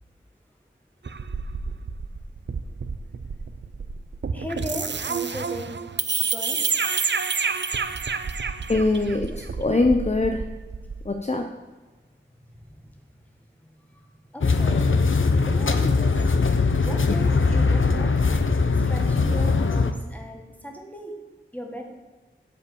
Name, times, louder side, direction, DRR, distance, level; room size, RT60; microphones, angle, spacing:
sound 1, 1.1-11.1, right 5 dB, 65° right, 0.5 m, -29 dB
voice 1, 4.3-5.8 6.3-6.6 13.9-14.9 15.4-16.2 16.8-18.1 18.8-21.1 21.5-21.8, equal, 10° left, 2 dB, 1.6 m, -37 dB
voice 2, 8.7-10.4 11.1-11.5, left 2 dB, 35° left, 4 dB, 0.6 m, -22 dB
sound 2, 14.4-19.9, left 4 dB, 80° left, 0.6 m, -21 dB
8.2 x 5.0 x 7.1 m, 1.3 s
wide cardioid pair, 45°, 20 cm